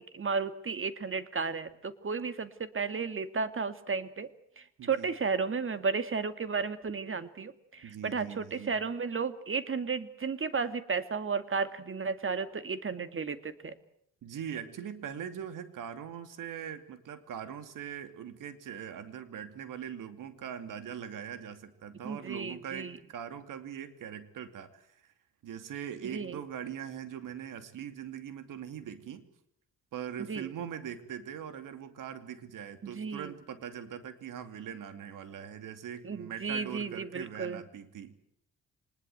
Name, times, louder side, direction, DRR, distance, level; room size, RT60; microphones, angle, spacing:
voice 1, 0.0-4.3 4.6-13.8 22.0-23.0 26.0-26.4 30.3-30.5 32.8-33.3 36.0-37.6, right 5 dB, 35° right, 12 dB, 2.3 m, -33 dB
voice 2, 4.8-5.1 7.8-8.7 14.2-25.1 25.4-29.3 29.9-38.2, right 8 dB, 65° right, 11 dB, 2.8 m, -41 dB
24.5 x 20.5 x 8.0 m, 0.71 s
hypercardioid pair, 55°, 34 cm